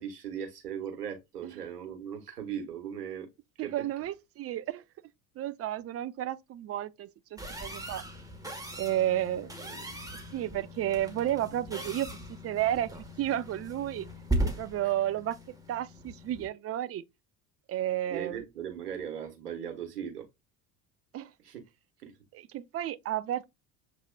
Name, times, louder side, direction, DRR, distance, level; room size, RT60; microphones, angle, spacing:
voice 1, 0.0-3.3 3.6-3.9 9.6-10.0 14.8-14.9 18.1-20.3 21.4-21.6 22.0-22.2, right 8 dB, 85° right, 1.4 m, -38 dB
voice 2, 3.6-4.8 5.4-8.0 8.8-9.5 10.3-14.1 14.4-17.0 17.7-18.4 21.1-21.3 22.5-23.5, right 12 dB, 30° right, 0.5 m, -32 dB
sound 1, 7.4-16.5, right 1 dB, 10° right, 1.3 m, -38 dB
7.2 x 2.9 x 2.3 m
hypercardioid pair, 70°, 46 cm